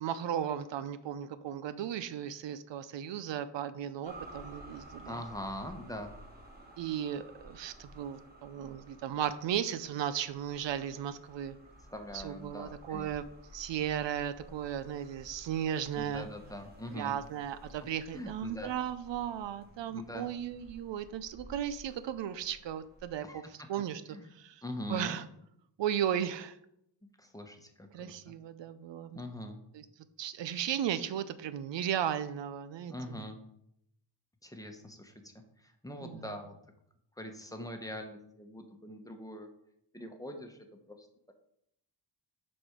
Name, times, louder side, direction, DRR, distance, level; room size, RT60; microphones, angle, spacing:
voice 1, 0.0-5.2 6.8-11.5 12.1-13.2 13.5-16.3 16.9-23.4 23.7-24.0 24.3-24.6 24.9-25.2 25.8-26.6 27.9-29.2 29.7-29.8 30.2-33.2 36.0-36.2, right 10 dB, 75° right, 13 dB, 0.6 m, -35 dB
sound 1, 4.0-23.1, right 1 dB, 20° right, 1.8 m, -53 dB
voice 2, 5.0-6.1 11.9-13.1 16.0-17.1 18.1-18.7 19.9-20.3 23.2-23.4 24.1-24.3 24.6-25.2 27.2-28.3 29.1-29.6 32.9-33.4 34.4-36.5 37.2-39.5 39.9-40.6 41.0-41.1, left 1 dB, 10° left, 4 dB, 1.0 m, -42 dB
7.6 x 4.3 x 5.1 m, 0.77 s
cardioid pair, 100°, 44 cm